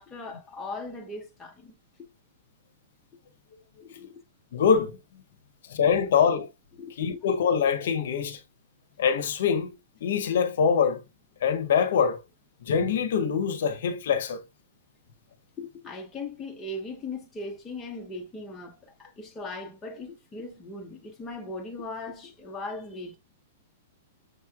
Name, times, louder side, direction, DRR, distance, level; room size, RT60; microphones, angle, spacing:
voice 1, 0.0-2.1 3.8-4.2 6.8-7.2 15.6-23.2, left 2 dB, 10° left, 0.7 m, -39 dB
voice 2, 4.5-5.0 5.7-6.5 7.0-8.4 9.0-9.7 10.0-11.0 11.4-12.2 12.6-14.4, left 7 dB, 60° left, 0.7 m, -24 dB
6.4 x 3.1 x 2.3 m
supercardioid pair, 170°, 0 cm